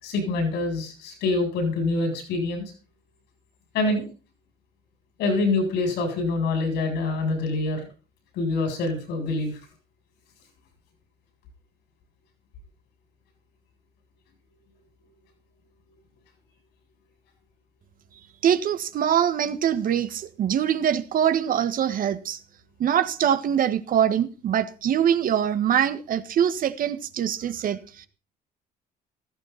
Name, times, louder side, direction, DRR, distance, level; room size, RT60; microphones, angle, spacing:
voice 1, 0.0-2.6 3.7-4.1 5.2-7.8 8.3-9.5, left 3 dB, 85° left, 7.9 m, -25 dB
voice 2, 18.4-22.4 22.8-28.1, right 9 dB, 55° right, 1.6 m, -23 dB
16.0 x 14.5 x 4.3 m
cardioid pair, 110°, 17 cm